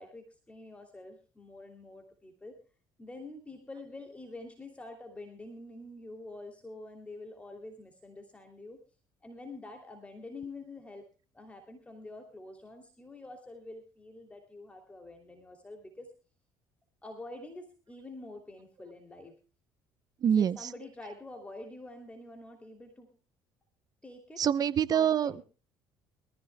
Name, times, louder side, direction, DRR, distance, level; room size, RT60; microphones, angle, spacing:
voice 1, 0.0-2.6 3.0-8.8 9.2-11.0 11.3-16.1 17.0-19.3 20.3-23.1 24.0-24.5 24.9-25.4, left 2 dB, 15° left, 4 dB, 2.8 m, -47 dB
voice 2, 20.2-20.6 24.4-25.4, right 9 dB, 45° right, 17 dB, 0.7 m, -25 dB
23.5 x 15.0 x 2.2 m, 0.34 s
cardioid pair, 95°, 9 cm